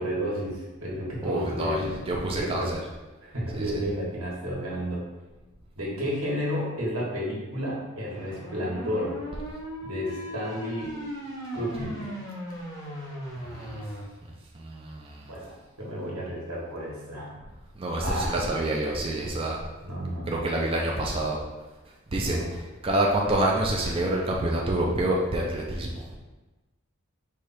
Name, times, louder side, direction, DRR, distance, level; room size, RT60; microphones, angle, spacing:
voice 1, 0.0-2.0 2.4-2.7 3.2-5.0 5.7-9.2 9.8-10.9 11.5-12.2 15.3-17.3 18.0-18.3 19.8-20.5 22.2-22.5, equal, 90° right, -5 dB, 1.5 m, -32 dB
voice 2, 1.2-2.8 3.5-3.8 13.4-13.8 14.5-15.3 17.8-19.7 20.3-21.4 22.1-26.2, right 1 dB, 25° right, -2 dB, 0.5 m, -27 dB
sound 1, 8.1-14.0, equal, 15° left, 1.1 m, -37 dB
4.9 x 2.4 x 4.3 m, 1.2 s
head